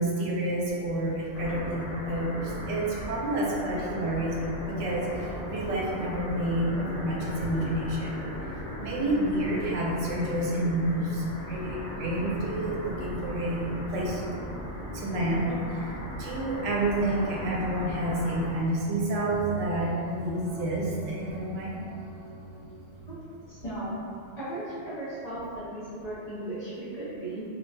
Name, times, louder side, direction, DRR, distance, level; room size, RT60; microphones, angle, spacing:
voice 1, 0.0-14.3 14.9-21.9 22.6-22.7, right 1 dB, 85° right, -4 dB, 0.9 m, -29 dB
sound 1, 1.3-18.5, equal, 80° left, 0.9 m, -37 dB
sound 2, 18.7-23.3, right 4 dB, 60° right, 0.7 m, -42 dB
voice 2, 23.5-24.0 24.4-27.4, right 1 dB, 40° left, -10 dB, 0.7 m, -36 dB
2.9 x 2.2 x 2.7 m, 2.4 s
omnidirectional pair, 1.2 m